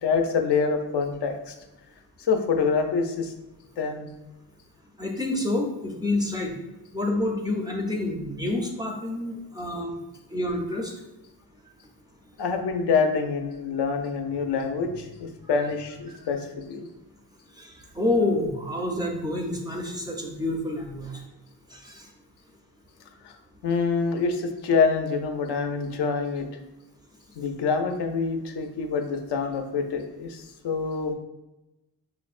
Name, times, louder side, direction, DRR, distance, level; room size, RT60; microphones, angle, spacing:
voice 1, 0.0-1.5 2.2-3.3 3.8-4.1 12.4-16.9 23.2-23.4 23.6-26.5 27.3-31.1, left 5 dB, 75° left, 5 dB, 0.6 m, -26 dB
voice 2, 5.0-6.5 6.9-9.9 10.3-10.9 17.6-21.2 21.7-22.1, left 2 dB, 10° right, 0 dB, 0.4 m, -28 dB
5.5 x 2.0 x 2.4 m, 0.99 s
wide cardioid pair, 130°, 42 cm